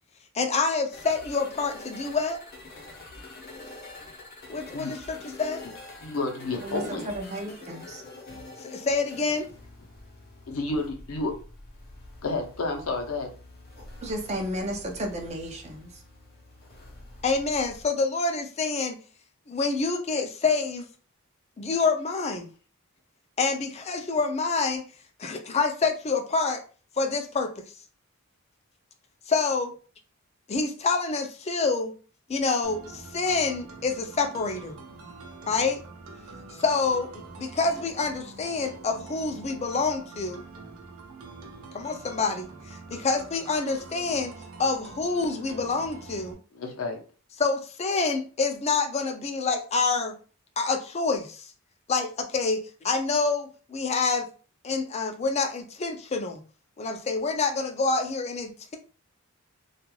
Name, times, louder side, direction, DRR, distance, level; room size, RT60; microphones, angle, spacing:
voice 1, 0.3-2.4 4.5-5.0 5.4-5.6 8.6-9.4 17.2-19.0 19.5-20.8 21.6-22.5 23.4-24.8 25.2-26.6 27.0-27.5 29.3-29.7 30.5-31.9 32.3-34.8 35.5-35.8 36.6-40.4 41.7-44.3 44.6-46.4 47.4-50.1 50.6-51.5 51.9-52.6 52.8-54.3 54.6-56.4 56.8-58.8, left 4 dB, 30° left, 0.4 m, -27 dB
sound 1, 0.9-17.8, left 2 dB, 45° left, 0.8 m, -46 dB
voice 2, 6.0-7.1 10.5-11.3 12.2-13.3 46.5-47.0, left 3 dB, 80° left, 0.7 m, -30 dB
voice 3, 6.6-8.0 14.0-15.9, equal, 30° right, 0.5 m, -33 dB
sound 2, 32.6-46.3, right 3 dB, 75° right, 0.6 m, -45 dB
3.1 x 2.4 x 2.3 m
head